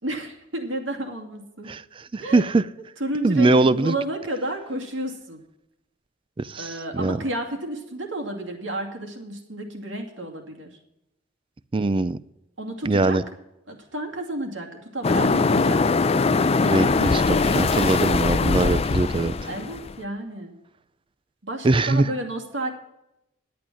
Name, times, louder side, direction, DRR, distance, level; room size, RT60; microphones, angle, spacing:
voice 1, 0.0-1.7 2.2-2.5 3.0-5.4 6.6-10.8 12.6-13.2 13.7-16.2 19.4-20.5 21.4-22.7, right 1 dB, 85° right, 3 dB, 2.5 m, -31 dB
voice 2, 1.7-2.7 3.2-3.9 6.4-7.2 11.7-12.2 12.8-13.2 16.6-19.3 21.6-22.1, right 2 dB, 25° right, 16 dB, 0.4 m, -22 dB
sound 1, 15.0-19.9, left 4 dB, 30° left, 0.5 m, -21 dB
11.5 x 8.7 x 6.2 m, 0.88 s
head